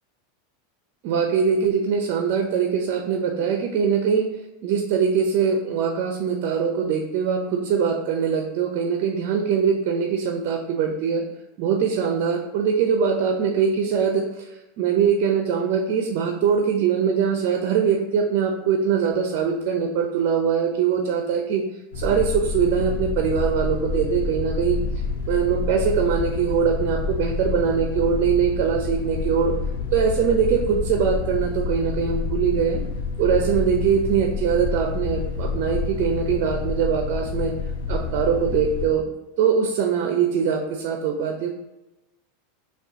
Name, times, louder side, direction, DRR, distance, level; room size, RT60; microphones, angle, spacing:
voice 1, 1.0-4.3 4.6-11.3 11.6-21.6 21.9-24.8 25.3-29.5 29.9-32.8 33.2-37.5 37.9-39.0 39.4-41.5, right 7 dB, 55° right, 4 dB, 0.5 m, -22 dB
sound 1, 21.9-38.9, left 4 dB, 70° left, 0.6 m, -28 dB
5.9 x 2.3 x 2.7 m, 0.99 s
hypercardioid pair, 90°, 0 cm